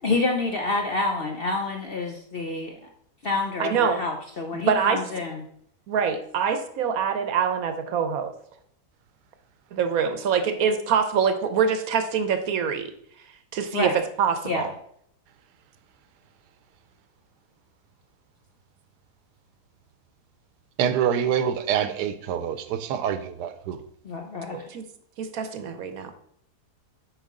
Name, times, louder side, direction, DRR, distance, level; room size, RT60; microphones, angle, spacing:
voice 1, 0.0-2.7 3.2-5.4 13.7-14.0 14.4-14.6 24.0-24.7, left 3 dB, 55° left, 2 dB, 0.7 m, -28 dB
voice 2, 3.6-4.0 4.5-5.0 5.9-8.3 9.7-12.9 13.5-14.7 24.5-24.9 25.2-26.1, right 6 dB, 65° right, 9 dB, 1.1 m, -25 dB
voice 3, 20.8-23.8, right 8 dB, 85° right, 11 dB, 1.2 m, -26 dB
8.9 x 5.1 x 3.7 m, 0.69 s
omnidirectional pair, 1.7 m